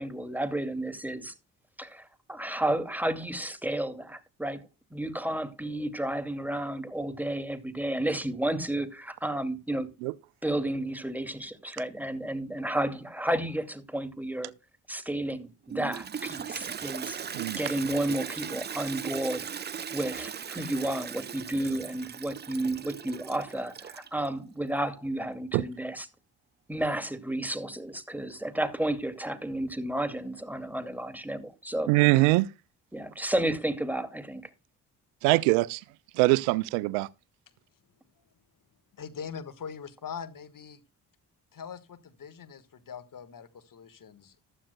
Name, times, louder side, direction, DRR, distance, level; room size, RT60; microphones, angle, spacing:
voice 1, 0.0-1.3 1.8-9.9 10.4-14.5 14.9-19.5 19.9-26.1 26.7-32.3 32.9-34.5, right 1 dB, 5° right, 2.3 m, -32 dB
Toilet flush, 15.7-24.3, right 7 dB, 25° right, 0.5 m, -38 dB
voice 2, 31.9-32.5 35.2-35.8 36.2-37.1, right 21 dB, 70° right, 0.6 m, -23 dB
voice 3, 39.0-40.8 41.5-44.4, left 7 dB, 45° left, 1.5 m, -42 dB
14.5 x 12.5 x 2.2 m
hypercardioid pair, 40°, 47 cm